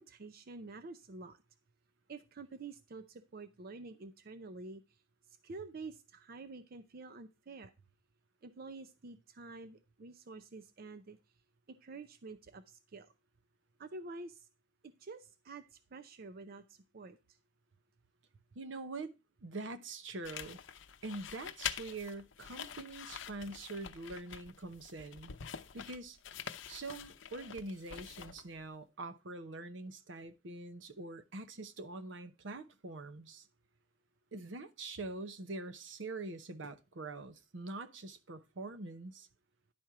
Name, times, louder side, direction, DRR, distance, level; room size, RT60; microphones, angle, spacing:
voice 1, 0.0-1.4 2.1-4.8 5.4-7.7 8.4-11.2 11.7-13.1 13.8-14.5 14.8-17.2, right 3 dB, 55° right, 0.5 m, -48 dB
voice 2, 18.5-19.1 19.4-20.6 21.0-25.4 25.7-26.2 26.7-33.5 34.3-39.3, right 2 dB, 70° right, 0.8 m, -44 dB
sound 1, 20.2-28.6, left 8 dB, 80° left, 0.6 m, -46 dB
10.5 x 4.4 x 4.7 m
head